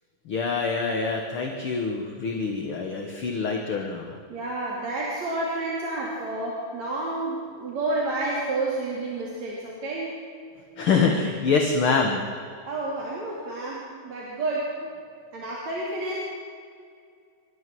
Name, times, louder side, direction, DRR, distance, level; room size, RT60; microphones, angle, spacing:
voice 1, 0.3-4.1 10.8-12.2, left 4 dB, 50° left, 3 dB, 1.9 m, -25 dB
voice 2, 4.3-10.1 12.7-14.7 15.3-16.2, right 2 dB, 50° right, -4 dB, 4.0 m, -30 dB
26.5 x 13.5 x 7.8 m, 2.3 s
omnidirectional pair, 4.0 m